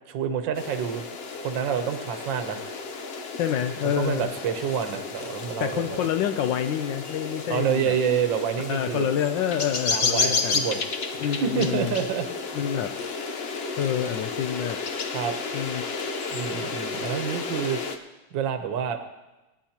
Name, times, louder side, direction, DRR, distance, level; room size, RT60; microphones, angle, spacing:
voice 1, 0.1-1.1 1.4-2.6 3.8-6.1 7.5-9.1 9.9-12.3 15.1-15.4 16.3-18.0 18.3-19.0, right 8 dB, 75° right, 6 dB, 1.6 m, -28 dB
sound 1, 0.6-18.0, left 4 dB, 55° left, 0.7 m, -32 dB
voice 2, 3.4-4.3 5.6-8.0 8.7-10.6 11.2-11.9 12.5-12.9 13.8-14.8 15.5-15.9, left 9 dB, 75° left, 7 dB, 1.3 m, -27 dB
25.5 x 10.0 x 2.9 m, 1.1 s
omnidirectional pair, 2.1 m